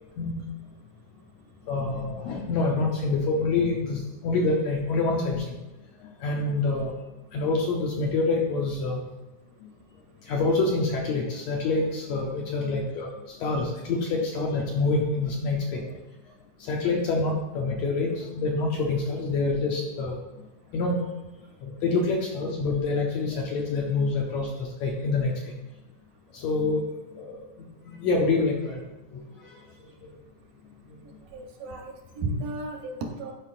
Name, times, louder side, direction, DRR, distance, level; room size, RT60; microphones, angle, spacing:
voice 1, 1.7-5.4 6.2-6.9 7.3-9.0 10.3-15.8 16.6-20.2 20.7-21.1 21.6-25.3 26.3-26.8 27.1-27.4 27.8-28.8 29.1-29.2 30.0-30.1, left 3 dB, 75° left, -1 dB, 1.7 m, -26 dB
voice 2, 31.3-33.3, right 2 dB, 80° right, 2 dB, 2.6 m, -33 dB
11.5 x 5.0 x 2.5 m, 1.1 s
omnidirectional pair, 3.8 m